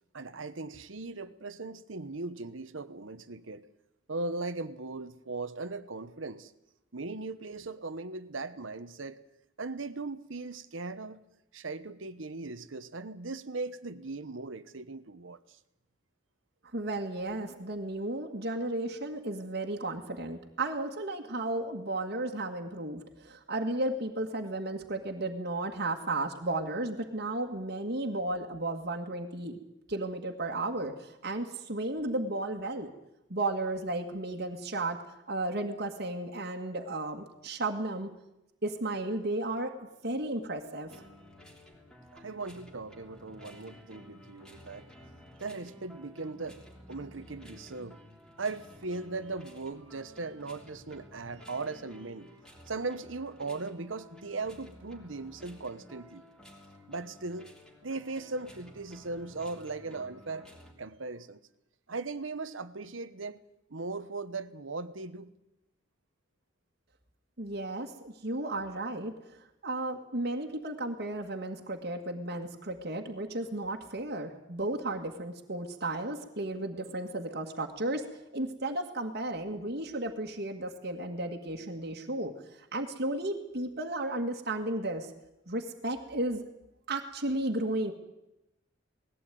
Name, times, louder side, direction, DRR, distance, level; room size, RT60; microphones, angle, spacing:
voice 1, 0.1-3.7 4.1-6.5 6.9-9.2 9.6-11.2 11.5-15.6 42.1-44.9 45.4-46.6 46.9-48.0 48.4-52.3 52.7-56.2 56.9-57.5 57.8-60.5 60.8-61.4 61.9-63.4 63.7-65.3, right 3 dB, 90° right, 1.1 m, -38 dB
voice 2, 16.7-29.6 29.9-32.9 33.3-35.0 35.3-38.1 38.6-41.0 67.4-69.4 69.6-78.1 78.3-82.3 82.6-85.1 85.5-86.4 86.9-87.9, right 2 dB, 55° right, 1.9 m, -34 dB
sound 1, 40.9-60.7, equal, 5° left, 3.1 m, -53 dB
19.5 x 16.0 x 9.3 m
head